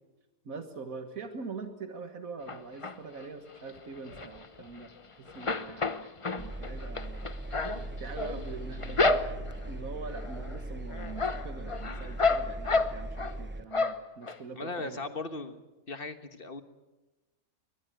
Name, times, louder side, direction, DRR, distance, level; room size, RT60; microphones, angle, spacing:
voice 1, 0.4-6.1 6.4-7.3 8.0-9.3 9.7-15.0, right 4 dB, 75° right, 7 dB, 1.9 m, -43 dB
sound 1, 2.5-3.2 3.7-5.0 5.3-9.7 10.1-10.6 10.9-13.4 13.7-14.4 14.8-14.9 15.1-15.2, left 3 dB, 25° left, 0.9 m, -31 dB
Engine, 6.4-13.6, right 1 dB, 10° right, 0.6 m, -40 dB
sound 2, 7.2-13.8, left 1 dB, 65° left, 5.1 m, -53 dB
voice 2, 14.5-16.6, left 3 dB, 40° left, 9 dB, 1.6 m, -38 dB
23.5 x 19.5 x 9.0 m, 1.1 s
omnidirectional pair, 1.5 m